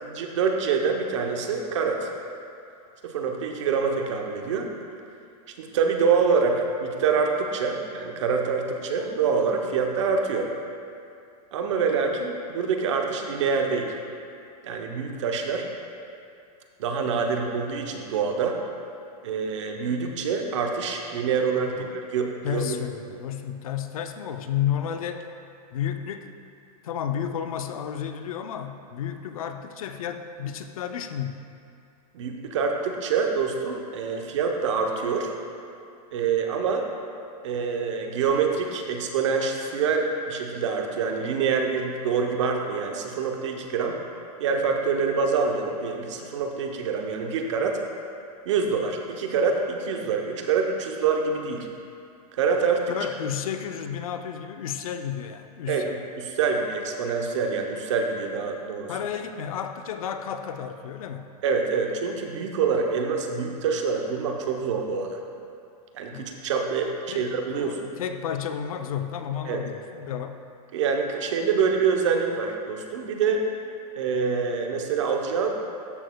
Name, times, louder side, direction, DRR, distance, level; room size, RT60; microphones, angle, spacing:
voice 1, 0.0-2.1 3.0-4.7 5.6-10.5 11.5-14.0 14.6-15.7 16.8-18.6 19.2-22.8 32.1-35.3 36.1-36.9 37.4-44.0 44.4-47.8 48.5-51.7 52.3-52.9 55.7-58.9 61.4-65.2 65.9-67.8 69.5-69.6 70.7-73.5 74.0-75.5, right 5 dB, 50° right, 3 dB, 0.7 m, -26 dB
voice 2, 22.4-25.3 25.7-26.3 26.8-31.4 52.9-55.9 58.9-61.3 66.1-66.3 67.1-70.4, left 9 dB, 60° left, 8 dB, 0.5 m, -32 dB
13.0 x 6.4 x 2.2 m, 2.5 s
supercardioid pair, 175°, 20 cm